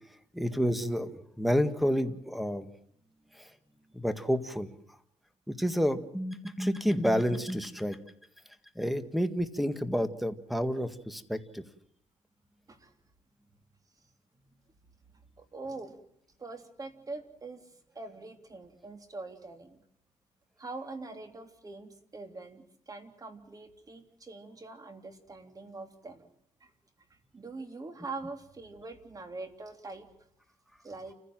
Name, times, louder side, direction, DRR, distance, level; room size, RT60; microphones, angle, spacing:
voice 1, 0.3-2.7 3.3-3.5 3.9-4.7 5.5-8.0 8.8-11.6, equal, ahead, 10 dB, 1.8 m, -29 dB
voice 2, 15.4-16.0 16.4-17.7 17.9-19.8 20.6-26.3 26.6-26.7 27.1-30.1 30.8-31.1, right 3 dB, 25° right, 6 dB, 3.3 m, -43 dB
29.5 x 15.5 x 7.6 m, 0.71 s
cardioid pair, 110°, 13 cm